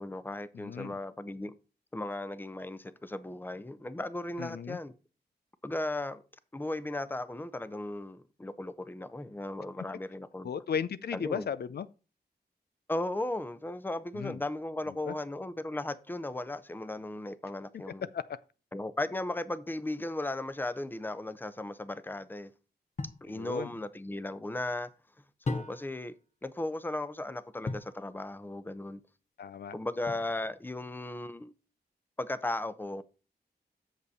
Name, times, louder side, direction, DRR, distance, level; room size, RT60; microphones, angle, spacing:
voice 1, 0.0-1.6 1.9-4.9 5.6-6.2 6.5-10.5 11.1-11.5 12.9-18.1 18.7-22.5 23.2-24.9 25.5-29.0 29.7-31.5 32.2-33.0, left 2 dB, 10° left, 0.7 m, -36 dB
voice 2, 0.5-1.0 4.4-4.8 10.4-11.9 14.1-14.4 15.1-15.2 18.1-18.2 23.3-23.7 29.4-29.7, left 7 dB, 70° left, 0.5 m, -35 dB
sound 1, 23.0-23.3 25.4-26.1 27.6-28.0 30.1-30.6, left 3 dB, 45° left, 1.1 m, -36 dB
8.0 x 6.7 x 4.1 m
wide cardioid pair, 85°, 17 cm